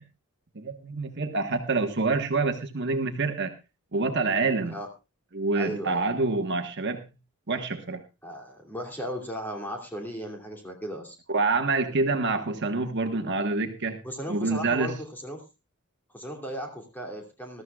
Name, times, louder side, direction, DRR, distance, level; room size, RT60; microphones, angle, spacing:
voice 1, 0.5-3.5 3.9-4.7 5.3-7.0 7.5-8.0 11.3-14.0 14.3-14.9, right 3 dB, 50° right, 5 dB, 1.4 m, -27 dB
voice 2, 5.5-6.1 8.2-11.2 14.0-15.4 16.1-17.6, equal, 10° left, 1 dB, 2.7 m, -36 dB
20.5 x 13.0 x 2.4 m, 0.26 s
head